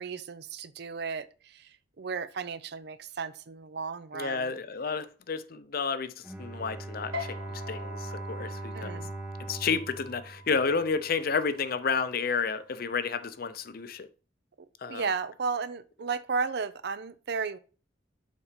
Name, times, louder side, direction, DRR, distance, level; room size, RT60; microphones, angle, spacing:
voice 1, 0.0-4.6 8.7-9.1 14.9-17.6, right 5 dB, 60° right, 0.5 m, -34 dB
voice 2, 4.1-9.0 9.5-14.1 14.8-15.1, left 5 dB, 50° left, 0.6 m, -31 dB
Bowed string instrument, 6.2-11.2, right 2 dB, 5° right, 0.6 m, -40 dB
sound 1, 7.1-13.9, left 2 dB, 80° right, 2.1 m, -45 dB
7.3 x 4.0 x 5.1 m
head